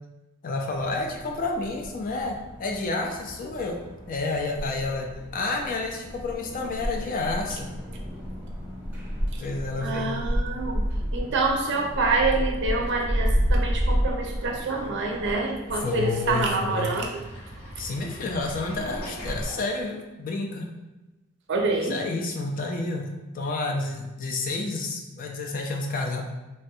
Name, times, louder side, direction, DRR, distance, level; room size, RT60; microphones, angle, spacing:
voice 1, 0.4-3.8 4.1-7.7 9.4-10.2 15.8-16.9 17.8-20.7 21.8-23.1 23.3-26.2, left 3 dB, 40° left, 2 dB, 0.4 m, -30 dB
sound 1, 0.7-19.4, equal, 10° right, 0.6 m, -31 dB
voice 2, 9.8-10.8 11.1-17.2 21.5-22.0, right 3 dB, 55° right, 2 dB, 0.4 m, -26 dB
Sink (filling or washing), 14.4-20.0, equal, 85° left, 1.0 m, -41 dB
3.2 x 2.3 x 2.6 m, 1.1 s
head